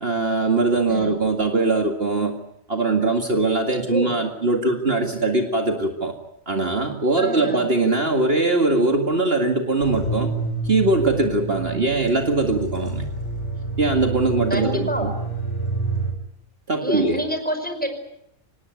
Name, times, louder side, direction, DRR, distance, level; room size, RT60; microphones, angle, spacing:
voice 1, 0.0-2.3 2.7-6.1 6.5-10.3 10.6-13.1 13.8-15.1 16.7-17.2, right 3 dB, 45° right, 4 dB, 2.4 m, -21 dB
voice 2, 3.8-4.2 7.2-7.7 11.7-11.8 14.5-15.1 16.8-17.9, equal, 5° left, 6 dB, 5.3 m, -28 dB
sound 1, 9.8-16.1, right 2 dB, 60° left, 5.6 m, -28 dB
26.0 x 19.0 x 9.5 m, 0.77 s
omnidirectional pair, 1.4 m